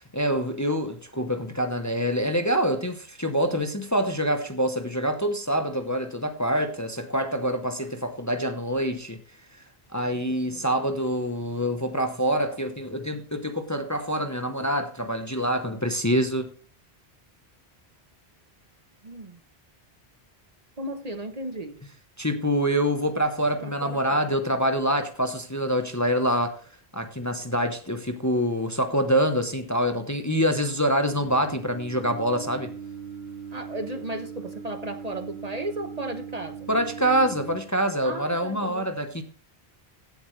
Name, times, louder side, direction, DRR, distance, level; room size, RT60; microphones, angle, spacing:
voice 1, 0.1-9.2 9.9-16.5 22.2-26.5 26.9-32.7 36.7-39.2, equal, 15° left, 0.9 m, -26 dB
voice 2, 19.0-19.4 20.8-21.8 23.6-24.2 33.5-36.7 38.0-38.9, right 1 dB, 40° right, 1.0 m, -35 dB
Singing, 31.1-37.6, right 6 dB, 65° right, 2.9 m, -39 dB
15.5 x 7.8 x 3.2 m
omnidirectional pair, 1.1 m